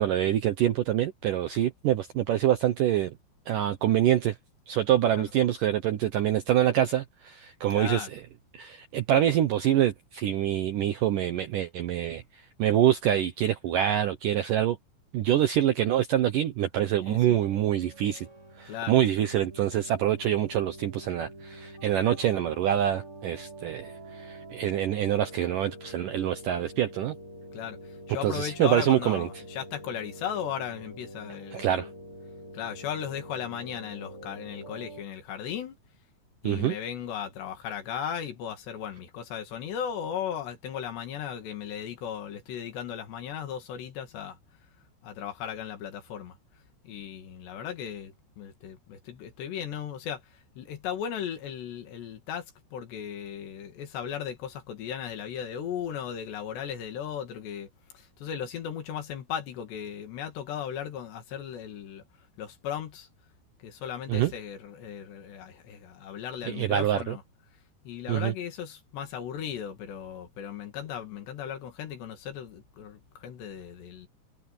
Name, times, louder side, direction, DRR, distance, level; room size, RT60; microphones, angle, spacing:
voice 1, 0.0-3.1 3.5-4.4 4.7-8.2 8.5-14.8 15.1-18.3 18.6-27.1 28.2-29.3 31.5-31.9 36.4-36.8 64.1-64.3 66.5-67.2 68.1-68.3, right 11 dB, 75° right, 2.0 m, -25 dB
voice 2, 7.7-8.1 17.0-17.4 18.7-19.0 27.5-27.8 28.1-31.9 32.5-35.8 36.4-44.4 45.0-46.4 46.8-50.2 50.6-52.5 52.7-57.7 57.9-62.0 62.4-63.1 63.6-67.2 67.9-74.1, left 9 dB, 70° left, 4.5 m, -36 dB
sound 1, 17.2-35.0, right 1 dB, 30° right, 5.5 m, -46 dB
omnidirectional pair, 5.1 m